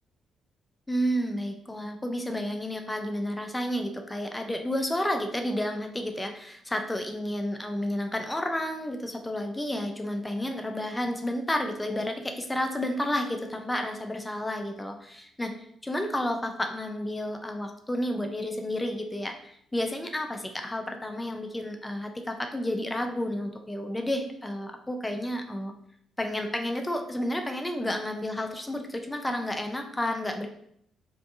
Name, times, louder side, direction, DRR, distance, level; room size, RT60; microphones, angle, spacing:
voice 1, 0.9-25.7 26.2-30.5, left 1 dB, 15° left, 5 dB, 0.4 m, -31 dB
2.5 x 2.3 x 2.6 m, 0.69 s
hypercardioid pair, 50°, 0 cm